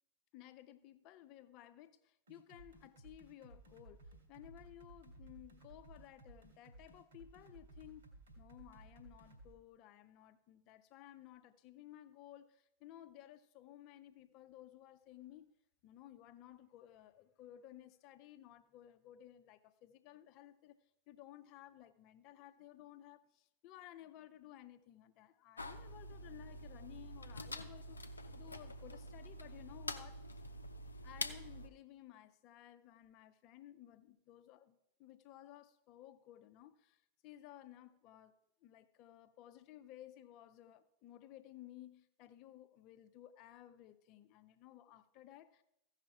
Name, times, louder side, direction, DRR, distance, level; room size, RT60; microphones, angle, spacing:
voice 1, 0.3-4.0 4.3-8.1 8.4-15.5 15.8-20.8 21.1-28.0 28.3-30.2 31.0-38.4 38.6-45.6, left 13 dB, 40° left, 0.7 m, -57 dB
sound 1, 2.3-9.5, right 2 dB, 70° right, 2.4 m, -58 dB
sound 2, 25.6-31.7, left 1 dB, 80° left, 0.6 m, -46 dB
15.0 x 5.7 x 4.7 m
figure-of-eight pair, 90°, 0 cm